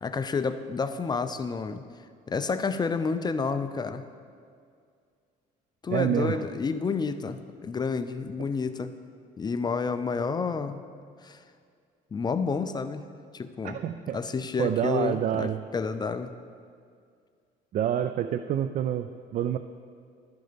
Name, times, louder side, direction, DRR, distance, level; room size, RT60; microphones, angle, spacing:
voice 1, 0.0-1.8 2.3-4.0 5.8-8.9 9.4-10.8 11.2-11.4 12.1-13.0 13.3-13.8 14.1-16.3, left 5 dB, 25° left, 10 dB, 0.4 m, -30 dB
voice 2, 5.9-6.4 13.6-14.2 14.6-15.6 17.7-19.6, right 10 dB, 50° right, 10 dB, 0.4 m, -27 dB
12.5 x 10.5 x 3.4 m, 2.2 s
cardioid pair, 110°, 17 cm